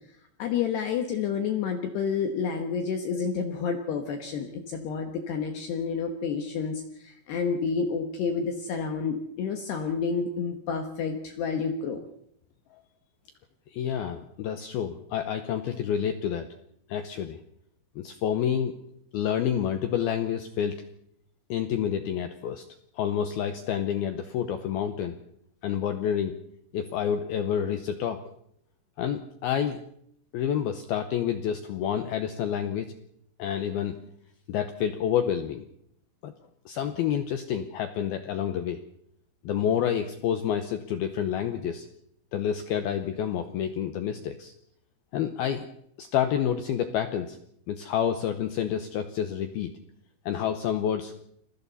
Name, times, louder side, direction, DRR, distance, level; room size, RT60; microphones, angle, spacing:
voice 1, 0.4-12.0, left 6 dB, 65° left, 5 dB, 3.2 m, -29 dB
voice 2, 13.7-16.5 16.9-17.4 18.0-18.7 19.1-20.8 21.5-22.6 23.0-25.2 25.6-26.3 26.7-28.2 29.0-29.8 30.3-32.9 33.4-34.0 34.5-35.6 36.2-36.3 36.7-38.8 39.5-41.9 42.3-44.5 45.1-45.7 46.0-47.4 47.7-49.7 50.3-51.1, left 9 dB, 80° left, 8 dB, 2.2 m, -28 dB
29.0 x 22.0 x 4.2 m, 0.71 s
omnidirectional pair, 5.8 m